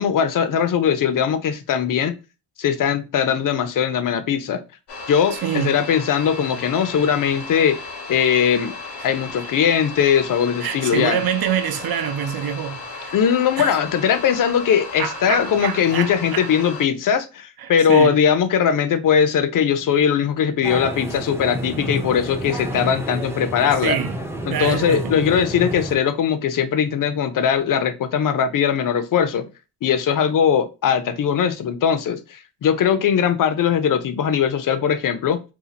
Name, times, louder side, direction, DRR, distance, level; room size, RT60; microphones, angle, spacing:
voice 1, 0.0-2.2 2.6-4.6 5.1-7.8 8.1-8.7 9.0-11.2 13.1-24.0 24.5-29.5 29.8-35.4, left 8 dB, 55° left, 0.5 m, -20 dB
sound 1, 4.9-16.8, left 3 dB, 85° left, 0.9 m, -35 dB
voice 2, 5.3-5.7 10.6-13.1 13.6-13.7 15.0-16.5 17.6-18.2 23.8-24.2 24.5-25.2, right 9 dB, 60° right, 0.6 m, -26 dB
sound 2, 20.6-26.0, right 1 dB, 5° right, 0.5 m, -29 dB
2.8 x 2.4 x 3.8 m
wide cardioid pair, 130°, 40 cm